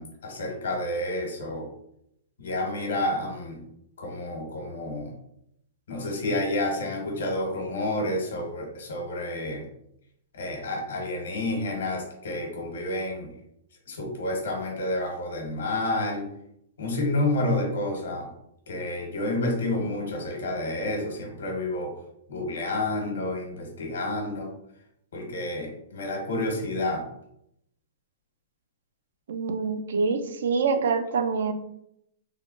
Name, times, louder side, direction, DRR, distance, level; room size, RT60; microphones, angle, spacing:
voice 1, 0.0-1.7 2.4-3.6 4.0-5.1 5.9-9.7 10.3-13.3 13.9-16.3 16.8-18.3 18.7-21.9 22.3-24.5 25.1-27.1, left 1 dB, 85° left, 1 dB, 1.0 m, -29 dB
voice 2, 29.3-31.5, right 5 dB, 75° right, 8 dB, 0.3 m, -25 dB
3.2 x 2.1 x 2.4 m, 0.75 s
hypercardioid pair, 155°, 0 cm